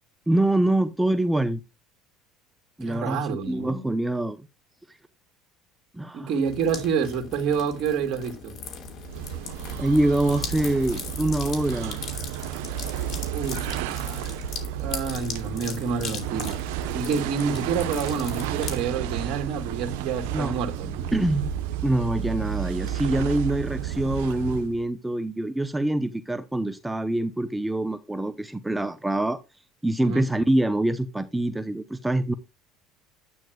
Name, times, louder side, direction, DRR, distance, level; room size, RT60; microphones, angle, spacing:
voice 1, 0.3-1.6 2.8-3.2 3.5-4.5 4.9-5.0 5.9-6.3 9.8-12.0 20.3-20.5 21.1-21.5 21.8-29.4 29.8-32.3, right 1 dB, 5° right, 0.7 m, -25 dB
voice 2, 2.8-3.8 6.1-8.6 13.3-14.4 14.8-16.6 16.9-21.1 30.0-30.3, right 6 dB, 55° right, 2.1 m, -28 dB
sound 1, 6.4-18.8, left 5 dB, 55° left, 2.9 m, -39 dB
sound 2, 9.0-24.8, right 10 dB, 80° right, 0.9 m, -32 dB
12.0 x 8.9 x 2.3 m
supercardioid pair, 95°, 0 cm